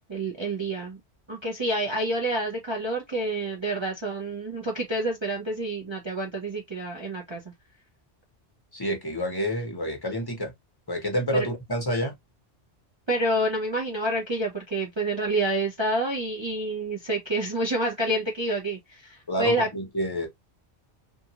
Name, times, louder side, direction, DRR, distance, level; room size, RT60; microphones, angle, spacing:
voice 1, 0.1-1.0 1.3-7.4 13.1-19.7, right 1 dB, 30° right, 0.6 m, -28 dB
voice 2, 8.7-10.5 10.9-12.1 19.3-20.3, equal, 20° left, 0.9 m, -28 dB
2.7 x 2.5 x 2.8 m
omnidirectional pair, 1.2 m